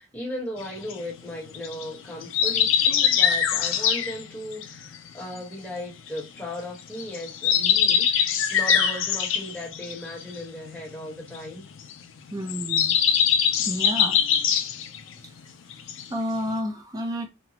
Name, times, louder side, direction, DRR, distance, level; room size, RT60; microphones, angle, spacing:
voice 1, 0.0-11.7, left 1 dB, 5° left, 1.2 m, -37 dB
sound 1, 0.6-6.4 6.8-15.4 15.7-16.5, left 8 dB, 70° left, 0.4 m, -23 dB
voice 2, 12.3-13.0 13.6-14.2 16.1-17.3, equal, 20° right, 0.6 m, -30 dB
2.9 x 2.2 x 2.8 m
head